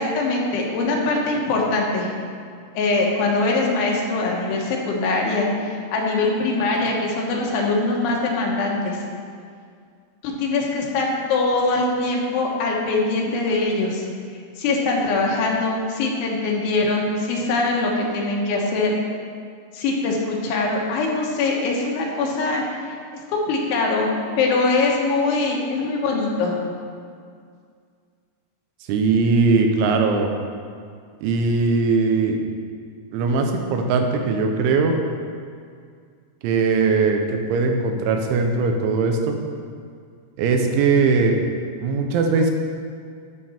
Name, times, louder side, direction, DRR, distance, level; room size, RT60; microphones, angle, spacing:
voice 1, 0.0-2.1 2.8-9.0 10.2-14.1 14.6-19.0 19.7-23.0 23.3-24.1 24.4-26.6, left 3 dB, 90° left, -1 dB, 3.7 m, -22 dB
voice 2, 28.9-30.3 31.2-32.4 33.1-35.0 36.4-39.4 40.4-41.4 41.8-42.5, right 4 dB, 85° right, 3 dB, 3.3 m, -20 dB
12.5 x 6.7 x 4.4 m, 2.2 s
omnidirectional pair, 5.3 m